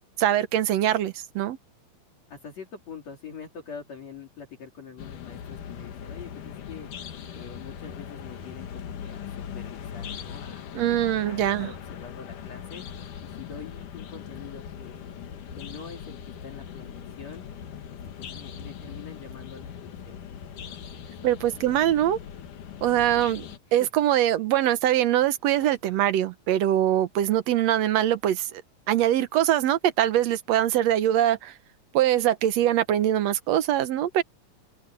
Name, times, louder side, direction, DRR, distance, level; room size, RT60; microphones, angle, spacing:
voice 1, 0.2-1.6 10.7-11.7 21.2-22.2 22.8-23.5 23.7-28.6 28.9-31.5 31.9-34.2, right 12 dB, 65° right, 1.9 m, -23 dB
voice 2, 2.3-6.9 7.3-12.8 13.2-15.1 15.6-16.2 16.4-17.5 17.9-20.2 20.7-21.1 23.4-23.9, left 6 dB, 60° left, 4.2 m, -45 dB
sound 1, 5.0-23.6, left 8 dB, 90° left, 3.3 m, -40 dB
omnidirectional pair, 3.5 m